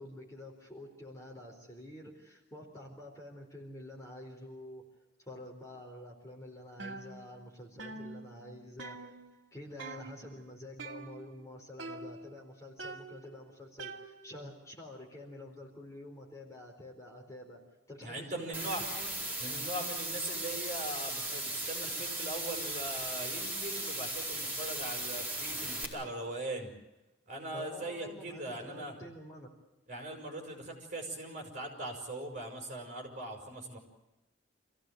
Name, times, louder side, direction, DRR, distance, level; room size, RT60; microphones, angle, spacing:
voice 1, 0.0-4.9 5.2-9.1 9.5-17.6 17.9-19.2 27.5-29.5, left 1 dB, 15° left, 0 dB, 4.2 m, -48 dB
sound 1, 6.8-7.5 7.8-9.5 9.8-10.4 10.8-11.5 11.8-12.4 12.8-14.5, right 3 dB, 75° right, 2.5 m, -46 dB
voice 2, 18.0-18.8 19.4-26.7 27.3-28.9 29.9-33.8, right 1 dB, 40° right, 2 dB, 6.3 m, -40 dB
sound 2, 18.5-25.8, right 2 dB, 10° right, 4.6 m, -37 dB
27.5 x 16.5 x 9.3 m, 0.98 s
head